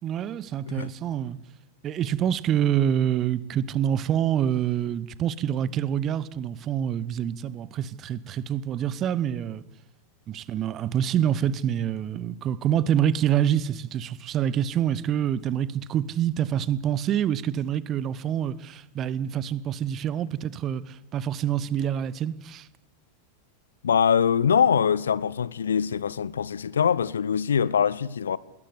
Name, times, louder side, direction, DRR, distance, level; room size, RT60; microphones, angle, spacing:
voice 1, 0.0-1.4 1.8-9.6 10.3-22.7, right 10 dB, 30° right, 1.0 m, -26 dB
voice 2, 23.8-28.4, left 7 dB, 70° left, 0.7 m, -23 dB
21.0 x 18.5 x 8.2 m
figure-of-eight pair, 90°, 0 cm